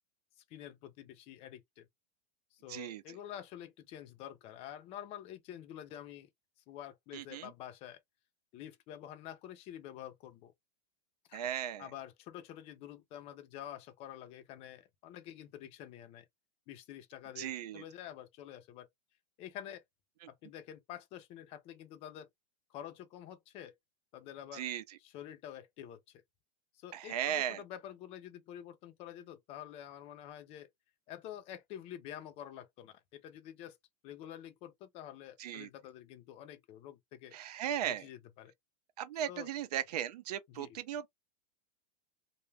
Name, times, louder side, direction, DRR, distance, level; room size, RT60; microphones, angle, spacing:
voice 1, 0.5-1.9 2.5-6.3 6.7-8.0 8.5-10.5 11.3-11.4 11.8-16.3 16.7-18.9 19.4-19.8 20.3-22.3 22.7-23.7 24.1-24.7 25.0-26.2 26.7-30.7 31.1-33.8 34.0-37.4 37.8-38.5 39.3-39.5 40.5-40.8, left 11 dB, 30° left, 0.5 m, -48 dB
voice 2, 2.7-3.2 7.1-7.5 11.3-11.9 17.4-17.8 24.5-24.8 26.9-27.6 35.4-35.7 37.3-38.0 39.0-41.1, right 10 dB, 75° right, 0.6 m, -37 dB
2.3 x 2.1 x 3.2 m
supercardioid pair, 145°, 21 cm